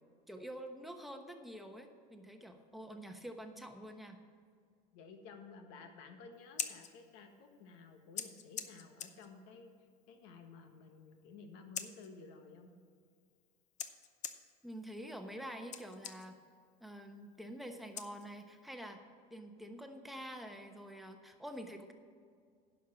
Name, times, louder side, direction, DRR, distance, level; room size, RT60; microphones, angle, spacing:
voice 1, 0.3-4.2 14.6-16.3 16.8-19.0 19.3-21.9, equal, ahead, 4 dB, 1.0 m, -47 dB
voice 2, 4.9-12.7, left 4 dB, 70° left, 5 dB, 1.5 m, -54 dB
Scissors, 6.3-18.7, left 8 dB, 35° left, 0.7 m, -49 dB
11.0 x 5.6 x 7.6 m, 2.1 s
supercardioid pair, 115°, 20 cm